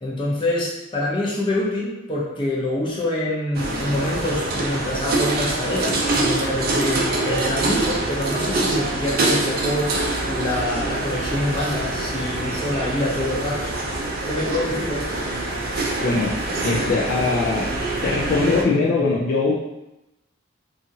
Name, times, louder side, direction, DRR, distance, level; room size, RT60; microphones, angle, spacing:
voice 1, 0.0-10.0 10.3-13.6 14.2-15.2, left 1 dB, 25° left, -6 dB, 0.7 m, -26 dB
sound 1, 3.5-18.6, right 2 dB, 50° right, 0.4 m, -25 dB
voice 2, 16.0-16.4 16.6-17.7 18.0-19.5, left 3 dB, 50° left, -4 dB, 0.3 m, -21 dB
2.8 x 2.4 x 2.7 m, 0.93 s
head